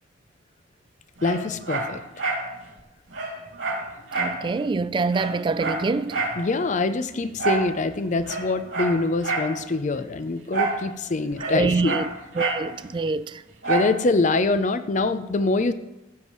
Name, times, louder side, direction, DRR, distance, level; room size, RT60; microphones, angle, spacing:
voice 1, 1.2-2.0 6.4-12.0 13.6-15.7, left 3 dB, 40° left, 0.5 m, -24 dB
Dog, 1.2-2.5 2.8-2.9 3.1-4.4 4.8-4.9 5.1-6.4 7.4-7.7 8.2-9.5 10.5-10.8 11.1-12.7 13.6-14.0 14.4-14.5, right 3 dB, 85° right, 2.6 m, -27 dB
voice 2, 4.2-6.2 11.4-12.1 12.4-13.4, right 4 dB, 25° right, 0.3 m, -25 dB
15.0 x 7.3 x 3.1 m
head